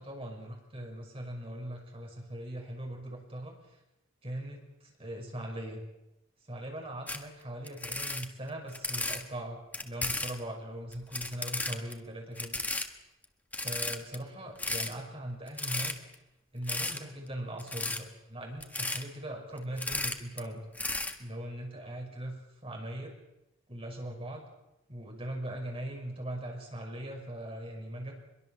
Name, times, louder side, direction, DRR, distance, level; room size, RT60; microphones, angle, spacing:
voice 1, 0.0-3.8 4.2-5.8 6.4-12.6 13.6-15.9 16.5-20.6 21.2-23.1 23.7-24.4 24.9-28.1, right 1 dB, 30° right, 1 dB, 6.1 m, -40 dB
sound 1, 7.1-7.2 7.7-9.2 9.7-10.4 10.9-11.9 12.4-12.9 13.2-13.3 13.5-14.2 14.6-14.9 15.5-16.1 16.7-17.0 17.6-18.0 18.6-19.0 19.6-20.4 20.7-21.1, left 2 dB, 10° left, 1.6 m, -34 dB
23.5 x 22.5 x 7.4 m, 0.92 s
head